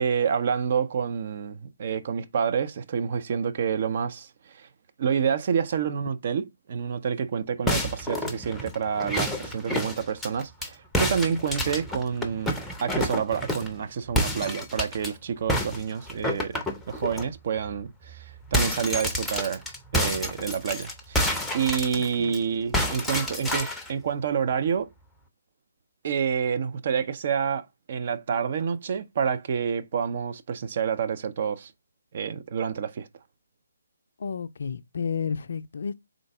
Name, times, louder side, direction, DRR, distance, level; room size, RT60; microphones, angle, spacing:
voice 1, 0.0-4.7 5.0-16.6 16.9-19.6 19.9-21.2 21.5-24.9 26.0-31.7 32.1-33.1, right 7 dB, 45° right, 0.5 m, -28 dB
sound 1, 7.7-10.7 10.9-13.8 14.1-15.1 15.5-17.2 17.7-17.8 18.1-22.4 22.7-23.9, equal, 5° left, 0.6 m, -29 dB
voice 2, 22.0-22.4 34.2-35.9, left 6 dB, 60° left, 0.4 m, -32 dB
3.9 x 3.8 x 3.4 m
figure-of-eight pair, 145°, 0 cm